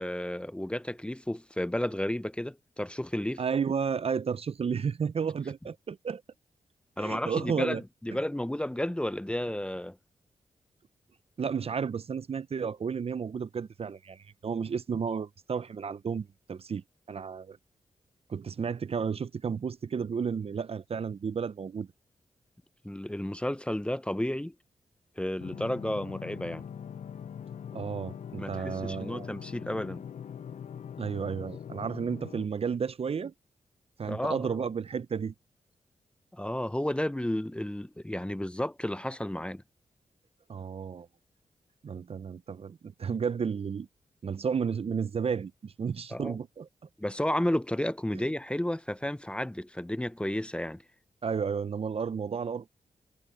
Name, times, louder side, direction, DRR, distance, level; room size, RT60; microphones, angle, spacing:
voice 1, 0.0-3.4 7.0-10.0 22.8-24.5 25.2-26.6 28.4-30.0 34.1-34.6 36.3-39.6 46.1-46.4 47.0-50.8, left 1 dB, 10° left, 0.8 m, -32 dB
voice 2, 3.4-6.2 7.0-7.8 11.4-17.6 18.3-21.9 27.7-29.3 31.0-33.3 34.0-35.3 40.5-41.1 41.8-43.9 44.2-46.7 51.2-52.7, right 6 dB, 55° right, 0.6 m, -32 dB
sound 1, 25.4-32.5, left 8 dB, 70° left, 0.6 m, -42 dB
cardioid pair, 50°, 12 cm